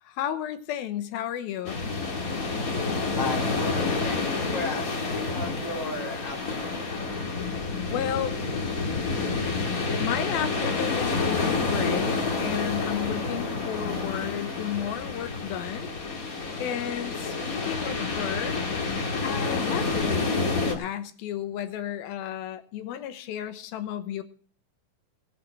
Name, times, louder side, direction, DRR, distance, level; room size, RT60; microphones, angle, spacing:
voice 1, 0.1-1.8 7.9-8.4 10.0-15.9 16.2-19.0 19.2-24.2, left 10 dB, 90° left, 9 dB, 2.9 m, -33 dB
sound 1, 1.6-20.7, left 3 dB, 35° left, 1.6 m, -29 dB
voice 2, 3.1-7.2, left 2 dB, 10° right, 0 dB, 1.5 m, -36 dB
17.5 x 7.7 x 5.9 m, 0.43 s
omnidirectional pair, 4.2 m